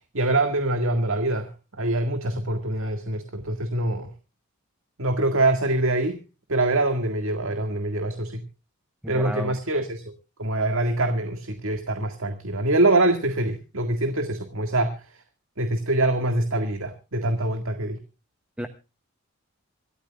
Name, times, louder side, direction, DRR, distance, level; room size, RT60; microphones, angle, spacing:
voice 1, 0.0-4.1 5.0-6.2 6.5-8.4 9.1-10.0 10.4-15.2 15.6-18.0, right 2 dB, 65° right, 7 dB, 1.9 m, -24 dB
voice 2, 9.0-9.6 18.6-18.7, equal, 5° right, 7 dB, 0.9 m, -32 dB
27.0 x 13.0 x 2.3 m, 0.31 s
head